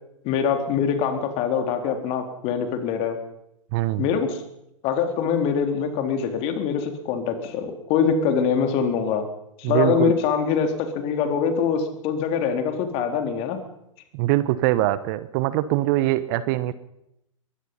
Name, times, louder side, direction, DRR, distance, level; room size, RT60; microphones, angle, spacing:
voice 1, 0.2-3.2 4.0-4.4 4.8-9.2 9.6-13.6, left 7 dB, 35° left, 6 dB, 3.9 m, -24 dB
voice 2, 3.7-4.0 9.6-10.1 14.1-16.7, right 16 dB, 40° right, 15 dB, 1.2 m, -22 dB
22.5 x 20.5 x 5.7 m, 0.81 s
figure-of-eight pair, 110°, 17 cm